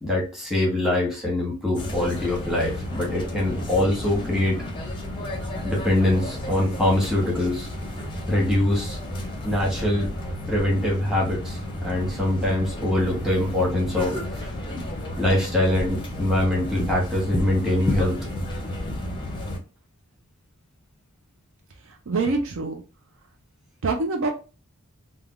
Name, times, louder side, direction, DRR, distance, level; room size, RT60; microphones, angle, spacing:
voice 1, 0.0-4.6 5.6-7.7 8.3-9.0 9.4-10.1 10.5-14.5 15.2-18.2, left 1 dB, ahead, -4 dB, 1.1 m, -23 dB
sound 1, 1.7-19.6, left 1 dB, 20° left, 0.5 m, -31 dB
voice 2, 22.1-22.8 23.8-24.3, right 3 dB, 60° right, 5 dB, 0.5 m, -24 dB
3.3 x 2.2 x 2.4 m, 0.34 s
head